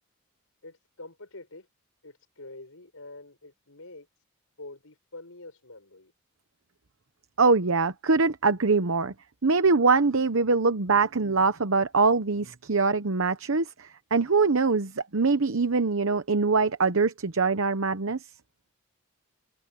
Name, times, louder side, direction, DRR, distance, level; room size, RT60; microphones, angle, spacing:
voice 1, 0.6-1.7 2.0-4.1 4.6-6.1, left 2 dB, 70° left, 6.2 m, -46 dB
voice 2, 7.4-9.1 9.4-18.2, right 4 dB, 65° right, 0.9 m, -23 dB
head